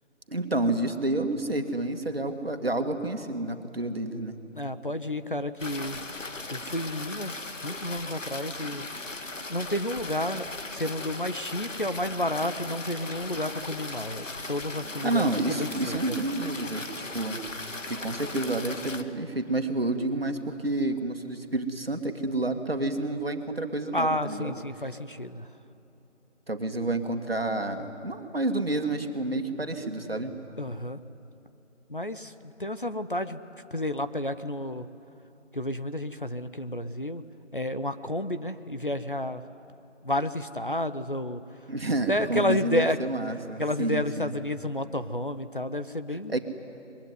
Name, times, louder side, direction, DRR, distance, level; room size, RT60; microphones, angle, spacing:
voice 1, 0.3-4.4 15.0-17.4 17.8-24.6 26.5-30.4 41.7-44.3 46.1-46.4, right 2 dB, 50° right, 6 dB, 2.0 m, -29 dB
voice 2, 4.5-6.0 6.5-8.8 9.5-15.3 15.6-16.2 23.9-25.5 30.6-31.0 31.9-33.4 33.7-34.9 35.5-37.2 37.5-39.4 40.0-41.4 42.1-43.0 43.6-46.4, left 1 dB, 45° left, 11 dB, 0.8 m, -31 dB
sound 1, 5.6-19.0, left 2 dB, 90° left, 2.1 m, -38 dB
24.5 x 22.0 x 9.6 m, 2.9 s
figure-of-eight pair, 180°, 37 cm